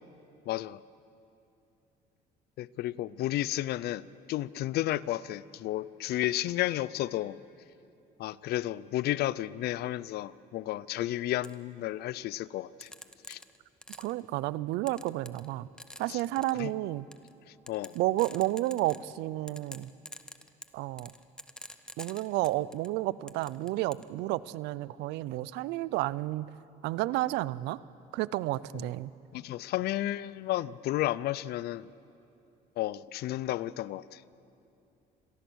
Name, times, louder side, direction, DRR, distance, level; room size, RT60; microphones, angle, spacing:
voice 1, 0.5-0.8 2.6-7.4 8.2-12.9 13.3-13.4 16.1-16.2 16.6-16.7 17.7-17.9 28.7-28.8 29.3-31.9 32.8-34.2, left 14 dB, 70° left, 20 dB, 0.5 m, -32 dB
sound 1, 11.4-11.5 12.8-14.2 14.9-15.5 15.8-16.6 17.1-17.3 17.7-19.2 19.5-22.9 23.3-24.1, left 1 dB, 5° left, 0.9 m, -46 dB
voice 2, 14.0-15.7 16.0-17.1 17.9-19.9 20.7-21.1 22.0-26.5 26.8-27.8 28.1-29.1, right 17 dB, 90° right, 19 dB, 0.5 m, -31 dB
26.0 x 18.5 x 6.3 m, 2.7 s
cardioid pair, 110°, 17 cm